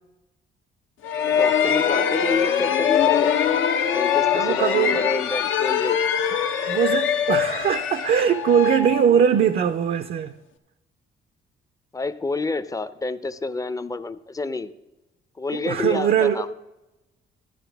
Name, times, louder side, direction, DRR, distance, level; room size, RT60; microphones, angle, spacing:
sound 1, 1.0-9.7, left 8 dB, 80° left, 0.8 m, -23 dB
voice 1, 1.3-3.3 3.9-6.0 11.9-14.7 15.4-16.6, left 3 dB, 15° left, 0.5 m, -28 dB
voice 2, 4.3-5.0 6.2-6.4 6.7-10.3 15.5-16.5, right 8 dB, 50° right, 0.5 m, -21 dB
12.0 x 9.6 x 3.4 m
cardioid pair, 90°, 20 cm